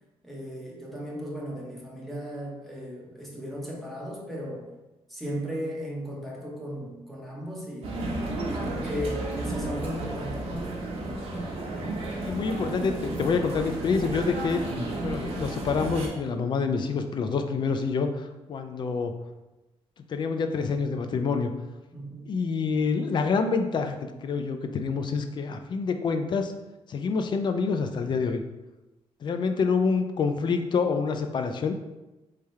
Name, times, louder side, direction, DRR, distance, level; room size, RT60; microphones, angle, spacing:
voice 1, 0.2-4.6 5.1-8.1 8.5-10.8 21.9-22.3, equal, ahead, -4 dB, 0.8 m, -36 dB
sound 1, 7.8-16.1, right 2 dB, 65° right, 1.0 m, -32 dB
voice 2, 12.2-14.6 15.0-19.1 20.1-21.5 22.3-26.5 26.9-28.4 29.2-31.7, left 5 dB, 45° left, 7 dB, 0.4 m, -27 dB
3.5 x 3.3 x 4.2 m, 1.0 s
wide cardioid pair, 155°, 11 cm